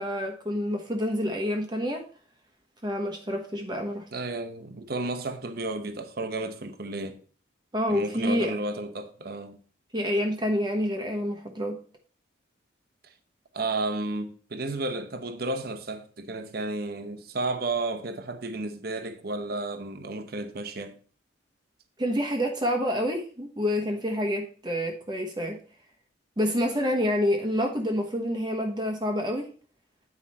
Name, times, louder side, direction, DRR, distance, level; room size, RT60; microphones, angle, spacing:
voice 1, 0.0-2.0 2.8-4.0 7.7-8.5 9.9-11.8 22.0-25.6 26.4-29.5, equal, 20° right, 1.1 m, -28 dB
voice 2, 4.1-7.2 7.9-9.6 13.0-13.1 13.5-20.9, right 2 dB, 50° right, 0.9 m, -32 dB
9.6 x 4.9 x 4.2 m
head